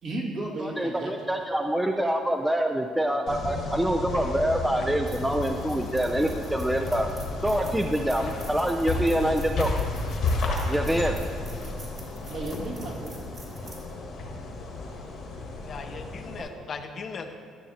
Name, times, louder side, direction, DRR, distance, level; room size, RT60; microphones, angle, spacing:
voice 1, 0.0-1.1 8.2-8.3 9.2-9.4 12.3-13.2 16.4-16.5, right 2 dB, 60° right, -3 dB, 1.9 m, -34 dB
voice 2, 0.6-7.1 7.4-9.7 10.7-11.1, right 1 dB, 10° right, 4 dB, 0.4 m, -26 dB
sound 1, 3.3-16.4, left 3 dB, 60° left, 1.4 m, -32 dB
sound 2, 4.5-15.0, right 2 dB, 45° right, 2.2 m, -49 dB
voice 3, 15.6-17.3, left 5 dB, 45° left, 6 dB, 0.6 m, -38 dB
13.0 x 6.4 x 2.8 m, 2.1 s
cardioid pair, 100°, 0 cm